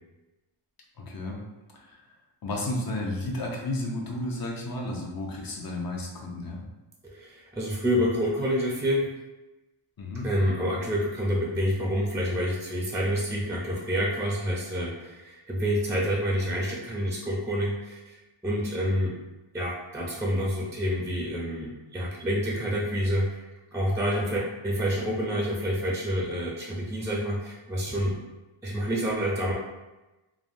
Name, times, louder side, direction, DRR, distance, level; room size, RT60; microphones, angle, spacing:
voice 1, 1.0-1.4 1.9-2.0 2.4-6.6 10.0-10.3, left 1 dB, 45° left, -1 dB, 0.7 m, -32 dB
voice 2, 7.1-9.1 10.2-19.1 19.5-23.4 23.7-28.2 28.6-29.5, equal, 5° right, -3 dB, 0.4 m, -28 dB
3.3 x 2.1 x 2.5 m, 1.1 s
wide cardioid pair, 80°, 50 cm